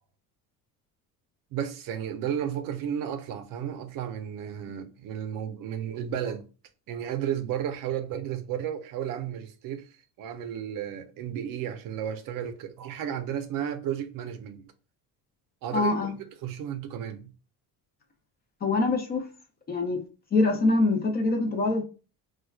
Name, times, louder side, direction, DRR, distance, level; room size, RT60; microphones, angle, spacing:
voice 1, 1.5-6.5 6.9-9.9 10.2-14.6 15.6-16.0 16.4-17.3, right 9 dB, 55° right, 0.5 m, -33 dB
voice 2, 15.7-16.2 18.6-19.3 19.7-20.0 20.3-21.8, left 2 dB, 25° left, 0.4 m, -24 dB
4.3 x 2.2 x 2.3 m
cardioid pair, 145°, 40 cm